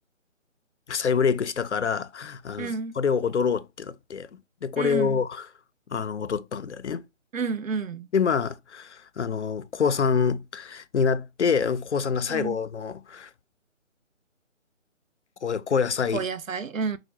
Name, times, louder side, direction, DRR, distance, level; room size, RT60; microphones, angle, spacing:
voice 1, 0.9-4.3 4.6-5.5 5.9-7.1 8.1-13.3 15.4-16.2, left 6 dB, 60° left, 0.5 m, -26 dB
voice 2, 2.6-3.0 4.8-5.2 7.3-8.1 12.3-12.6 16.1-17.0, right 5 dB, 80° right, 0.7 m, -30 dB
4.8 x 2.1 x 4.5 m
figure-of-eight pair, 165°, 39 cm